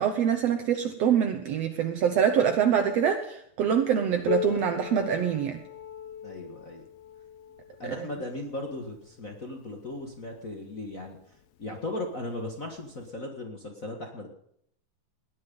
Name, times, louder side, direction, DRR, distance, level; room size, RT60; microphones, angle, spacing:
voice 1, 0.0-5.6 8.0-8.1, right 8 dB, 75° right, 6 dB, 1.5 m, -25 dB
Piano, 4.3-9.6 10.5-10.6 11.1-11.2 11.9-12.0 13.1-13.2, left 9 dB, 85° left, 2.9 m, -38 dB
voice 2, 6.2-6.8 7.8-11.2 11.6-14.3, left 2 dB, 55° left, 2 dB, 0.9 m, -37 dB
19.0 x 11.0 x 5.4 m, 0.70 s
omnidirectional pair, 4.3 m